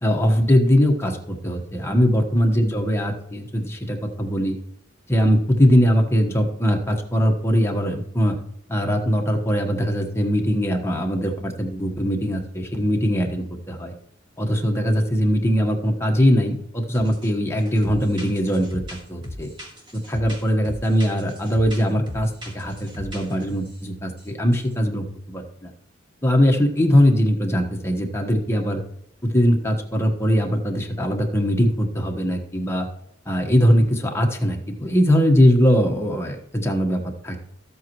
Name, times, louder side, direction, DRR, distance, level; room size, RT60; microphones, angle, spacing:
voice 1, 0.0-4.5 5.1-8.4 8.7-13.9 14.4-18.8 19.1-19.5 19.9-25.7 26.2-28.8 29.2-32.9 33.3-37.5, equal, 15° left, 2 dB, 1.2 m, -21 dB
sound 1, 16.9-17.3 17.6-23.8 24.2-24.3 24.5-24.7, left 1 dB, 25° right, 2.6 m, -38 dB
13.5 x 8.3 x 3.1 m, 0.72 s
head